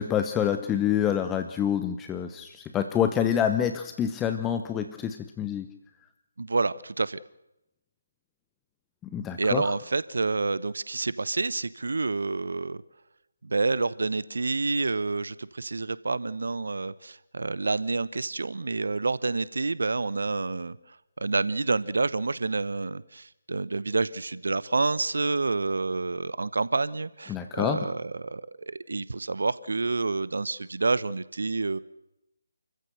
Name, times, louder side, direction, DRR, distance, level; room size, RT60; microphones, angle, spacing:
voice 1, 0.0-2.5 2.7-5.7 9.1-9.6 27.3-27.8, left 9 dB, 10° left, 8 dB, 0.9 m, -27 dB
voice 2, 6.4-7.2 9.4-12.8 13.4-31.8, right 3 dB, 65° right, 18 dB, 0.8 m, -28 dB
28.5 x 15.0 x 8.0 m, 0.89 s
figure-of-eight pair, 150°, 0 cm